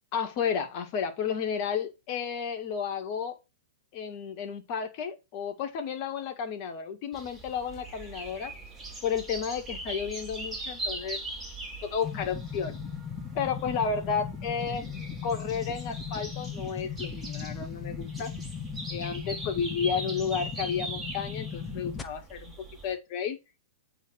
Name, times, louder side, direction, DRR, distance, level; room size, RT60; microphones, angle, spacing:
voice 1, 0.1-3.4 3.9-8.5 9.0-11.2 11.8-12.8 13.3-14.9 15.2-18.3 18.9-22.5 22.8-23.4, left 7 dB, 45° left, 1.8 m, -32 dB
sound 1, 7.1-22.9, right 2 dB, 10° right, 2.9 m, -41 dB
sound 2, 12.0-22.0, left 7 dB, 20° left, 0.9 m, -38 dB
8.3 x 3.6 x 6.3 m
figure-of-eight pair, 105°, 0 cm